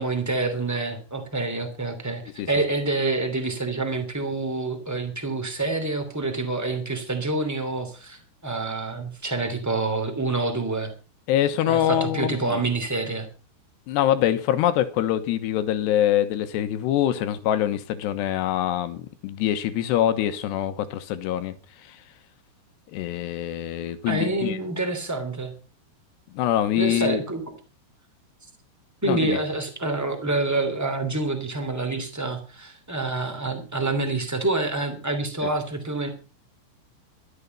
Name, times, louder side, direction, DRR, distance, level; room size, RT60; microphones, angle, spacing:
voice 1, 0.0-2.2 2.5-10.9 11.6-13.3 24.0-25.5 26.7-27.4 29.0-36.1, right 2 dB, 10° right, 1.0 m, -27 dB
voice 2, 11.3-12.6 13.9-21.5 21.9-22.0 22.9-24.6 26.3-27.2 29.1-29.4, left 11 dB, 70° left, 2.9 m, -24 dB
13.0 x 13.0 x 5.4 m
omnidirectional pair, 5.6 m